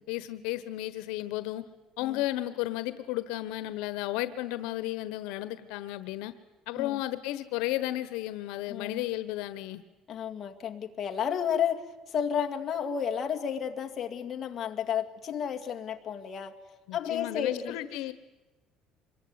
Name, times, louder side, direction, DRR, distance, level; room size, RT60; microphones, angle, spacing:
voice 1, 0.1-1.6 2.0-6.3 6.7-9.8 16.9-18.1, left 16 dB, 85° left, 13 dB, 1.3 m, -33 dB
voice 2, 8.7-9.0 10.1-16.5 16.9-17.8, left 8 dB, 35° left, 2 dB, 2.2 m, -32 dB
26.0 x 22.0 x 9.7 m, 1.1 s
cardioid pair, 155°, 0 cm